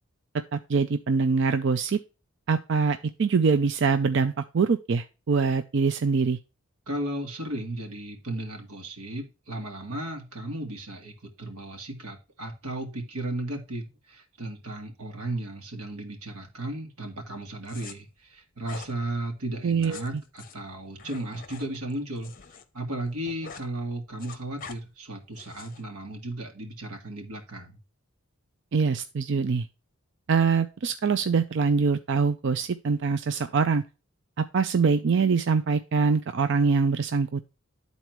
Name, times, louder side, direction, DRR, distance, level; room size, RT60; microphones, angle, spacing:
voice 1, 0.5-2.0 2.5-6.4 19.6-20.0 28.7-29.7 30.3-33.8 34.4-37.4, right 5 dB, 55° right, 10 dB, 0.4 m, -24 dB
voice 2, 6.9-22.3 22.7-27.8, right 1 dB, 90° right, 3 dB, 2.0 m, -35 dB
sound 1, 17.6-17.9 18.6-18.9 19.7-22.6 22.9-23.7 24.0-24.8 25.3-25.8, left 5 dB, 40° left, 0.8 m, -45 dB
10.5 x 4.1 x 4.5 m, 0.30 s
head